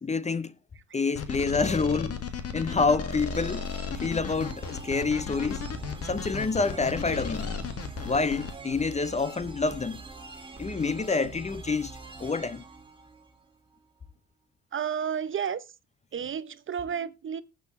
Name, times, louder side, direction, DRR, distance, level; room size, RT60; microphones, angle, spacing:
voice 1, 0.0-0.5 0.9-2.2 2.5-3.7 3.9-5.6 6.0-7.5 8.0-10.0 10.6-11.9 12.2-12.6, left 4 dB, 25° left, 0.6 m, -27 dB
sound 1, 1.1-8.5, left 6 dB, 50° left, 1.8 m, -34 dB
sound 2, 3.2-13.8, right 3 dB, 15° right, 2.2 m, -44 dB
voice 2, 14.7-15.6 16.1-17.4, right 8 dB, 40° right, 0.7 m, -31 dB
19.5 x 7.0 x 3.1 m
cardioid pair, 90°, 30 cm